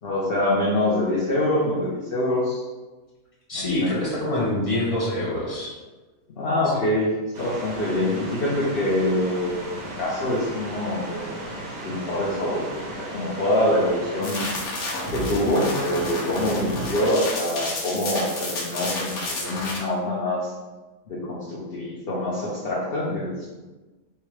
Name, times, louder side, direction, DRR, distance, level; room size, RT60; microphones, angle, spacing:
voice 1, 0.0-2.6 3.5-4.0 6.3-7.1 7.4-9.7 10.0-11.5 11.8-12.7 13.0-14.5 15.1-20.5 21.1-23.6, left 1 dB, 50° left, -6 dB, 0.9 m, -25 dB
voice 2, 3.5-5.7 6.6-6.8, left 1 dB, 25° left, -7 dB, 1.3 m, -26 dB
sound 1, 7.3-14.7, right 1 dB, 35° right, 0.9 m, -36 dB
sound 2, 14.2-19.8, left 1 dB, 80° left, 1.3 m, -30 dB
4.6 x 2.9 x 3.2 m, 1.2 s
omnidirectional pair, 1.5 m